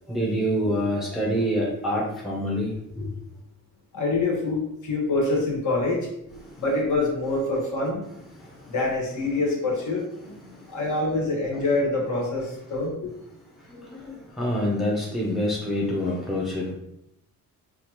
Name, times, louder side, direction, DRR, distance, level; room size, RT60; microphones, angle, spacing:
voice 1, 0.1-3.1 10.2-10.4 13.7-16.7, equal, ahead, -4 dB, 0.6 m, -26 dB
voice 2, 3.9-6.1 6.6-8.0 8.7-10.0 10.7-13.1, left 2 dB, 55° left, -2 dB, 1.3 m, -25 dB
5.0 x 2.4 x 2.9 m, 0.79 s
wide cardioid pair, 160°, 35 cm